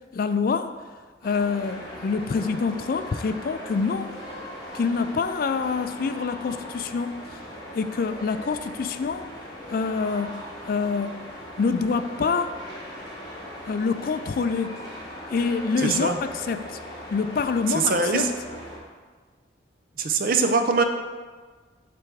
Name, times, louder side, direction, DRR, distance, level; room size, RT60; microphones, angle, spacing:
voice 1, 0.1-0.7 1.2-4.1 4.7-7.4 7.7-9.2 9.7-10.4 10.7-11.2 11.6-12.5 13.7-14.8 15.3-16.7 17.1-18.3, left 5 dB, 50° left, 10 dB, 0.3 m, -26 dB
sound 1, 1.2-18.8, equal, 20° left, 1.3 m, -39 dB
voice 2, 15.8-16.2 17.7-18.3 20.0-20.8, right 4 dB, 50° right, 5 dB, 0.5 m, -22 dB
7.8 x 3.4 x 6.0 m, 1.5 s
head